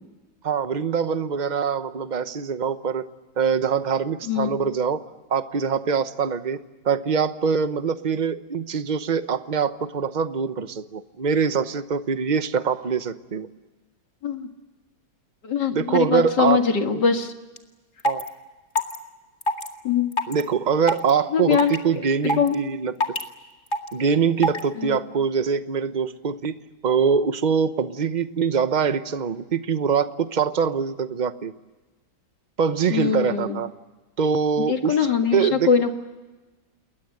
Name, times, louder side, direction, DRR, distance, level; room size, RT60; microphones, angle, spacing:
voice 1, 0.4-3.0 3.4-6.6 6.8-13.5 15.7-16.6 16.9-17.0 18.0-18.2 20.3-22.9 23.9-26.5 26.8-31.5 32.6-33.7 34.2-35.7, right 6 dB, 40° right, 11 dB, 0.6 m, -23 dB
voice 2, 15.4-17.3 19.8-20.1 21.3-21.7 22.4-22.6 24.8-25.0 32.9-33.6 34.7-35.9, left 7 dB, 55° left, 5 dB, 2.5 m, -22 dB
sound 1, 17.6-17.7 18.0-18.3 18.8-19.0 19.4-19.7 20.1-20.4 20.9-21.1 21.5-21.8 22.3-22.5 23.0-23.2 23.7-23.9 24.4-24.6, left 1 dB, 25° left, 2.1 m, -23 dB
29.0 x 21.5 x 7.9 m, 1.2 s
omnidirectional pair, 2.3 m